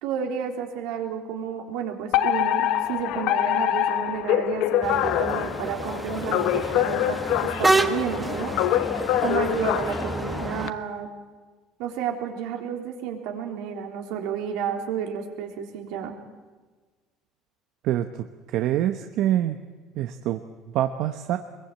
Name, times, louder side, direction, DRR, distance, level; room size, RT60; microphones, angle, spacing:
voice 1, 0.0-8.5 9.2-11.1 11.8-16.2, right 8 dB, 80° right, 3 dB, 3.7 m, -31 dB
Alarm, 2.1-10.7, left 12 dB, 65° left, 1.1 m, -25 dB
sound 1, 4.8-10.7, right 2 dB, 10° right, 1.1 m, -28 dB
voice 2, 17.8-19.6 19.9-21.4, right 12 dB, 60° right, 7 dB, 1.1 m, -26 dB
23.5 x 22.0 x 8.8 m, 1.4 s
cardioid pair, 140°, 0 cm